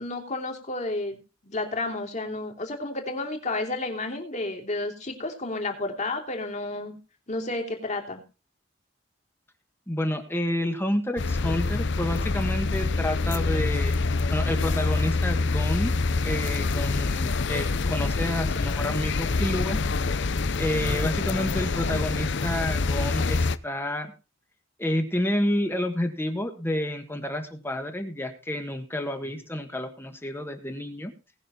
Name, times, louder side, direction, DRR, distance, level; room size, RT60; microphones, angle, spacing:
voice 1, 0.0-7.0 7.3-8.2, left 2 dB, 40° left, 3 dB, 3.1 m, -31 dB
voice 2, 9.9-15.9 16.2-19.8 20.6-24.1 24.8-31.1, left 1 dB, 10° left, 6 dB, 1.5 m, -29 dB
sound 1, 11.2-23.6, left 3 dB, 65° left, 0.7 m, -26 dB
19.5 x 6.6 x 4.2 m, 0.31 s
head